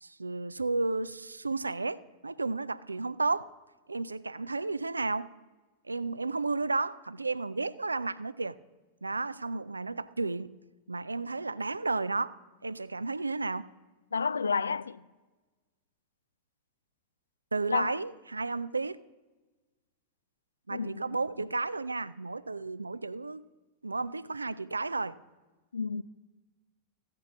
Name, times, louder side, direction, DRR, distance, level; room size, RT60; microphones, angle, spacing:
voice 1, 0.0-3.5 3.9-5.3 5.9-8.6 9.0-10.5 10.9-12.4 12.6-13.7 17.5-19.0 20.7-23.4 23.8-25.2, right 3 dB, 80° right, 0.3 m, -32 dB
voice 2, 14.1-15.0 17.7-18.0 20.7-21.0 21.4-21.5 25.7-26.0, left 5 dB, 75° left, 0.3 m, -31 dB
15.5 x 6.7 x 7.1 m
figure-of-eight pair, 90°, 0 cm